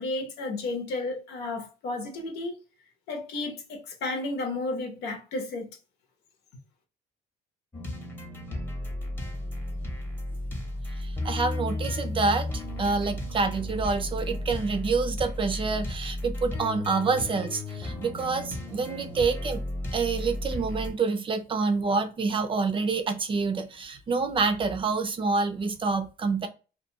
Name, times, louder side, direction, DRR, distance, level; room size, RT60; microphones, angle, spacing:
voice 1, 0.0-2.6 3.1-5.7, left 2 dB, 90° left, 0.9 m, -32 dB
sound 1, 7.7-20.9, left 1 dB, 15° left, 0.8 m, -34 dB
voice 2, 11.0-19.6 19.9-26.5, right 4 dB, 30° right, 0.4 m, -27 dB
2.3 x 2.3 x 2.8 m
cardioid pair, 110°, 17 cm